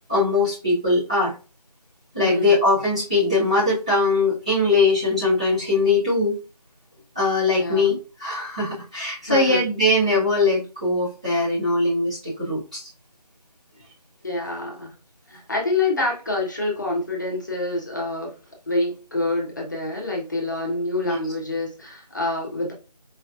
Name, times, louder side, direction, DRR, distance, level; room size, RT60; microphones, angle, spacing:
voice 1, 0.1-1.3 2.1-6.4 7.1-12.9 21.0-21.2, left 2 dB, 10° right, -11 dB, 0.8 m, -21 dB
voice 2, 2.2-2.6 7.6-8.0 9.2-9.6 14.2-15.0 15.3-18.3 18.7-22.7, left 2 dB, 30° left, -2 dB, 1.1 m, -27 dB
4.9 x 3.1 x 2.4 m, 0.33 s
figure-of-eight pair, 165°, 21 cm